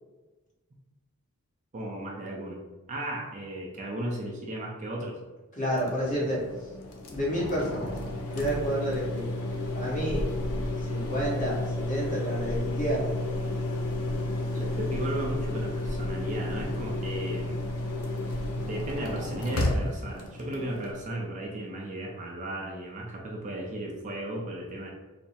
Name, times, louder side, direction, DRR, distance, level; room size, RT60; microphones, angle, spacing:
voice 1, 1.7-2.6 2.9-5.2 14.5-17.6 18.6-24.9, right 1 dB, 35° right, -1 dB, 0.5 m, -35 dB
voice 2, 5.6-6.4 7.1-7.9 8.3-9.3 9.7-10.3 10.9-13.2, equal, 35° left, -5 dB, 1.1 m, -30 dB
sound 1, 5.7-20.9, left 1 dB, 85° left, 0.6 m, -32 dB
3.5 x 2.1 x 4.1 m, 1.2 s
head